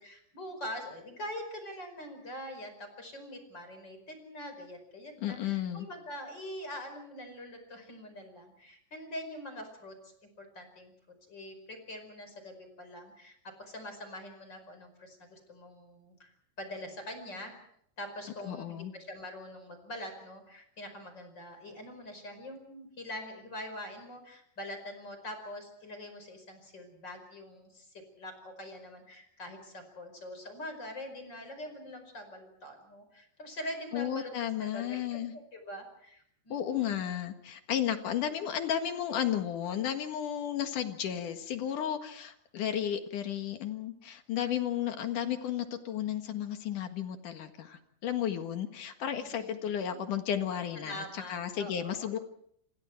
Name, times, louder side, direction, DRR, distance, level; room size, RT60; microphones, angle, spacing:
voice 1, 0.0-10.9 11.3-17.6 18.0-27.9 28.2-37.0 49.2-49.5 49.9-50.0 50.8-52.1, left 1 dB, 25° left, 6 dB, 5.4 m, -44 dB
voice 2, 5.2-5.9 18.4-18.9 33.9-35.3 36.5-52.2, left 10 dB, 60° left, 6 dB, 2.9 m, -33 dB
27.5 x 26.5 x 4.6 m, 0.68 s
omnidirectional pair, 4.7 m